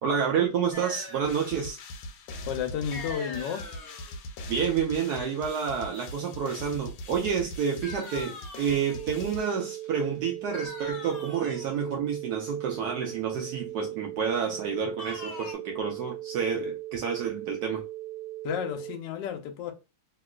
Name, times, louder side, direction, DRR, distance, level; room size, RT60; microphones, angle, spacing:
voice 1, 0.0-1.8 4.5-17.8, right 7 dB, 85° right, 0.8 m, -29 dB
sound 1, 0.7-1.7 2.9-4.2 7.8-9.1 10.5-11.8 15.0-15.5, left 2 dB, 50° left, 0.8 m, -42 dB
sound 2, 1.2-10.1, left 1 dB, 90° left, 1.5 m, -42 dB
voice 2, 2.5-3.7 18.4-19.7, left 8 dB, 70° left, 1.2 m, -32 dB
sound 3, 8.9-18.9, right 15 dB, 60° right, 1.2 m, -39 dB
3.0 x 2.9 x 2.3 m
omnidirectional pair, 2.3 m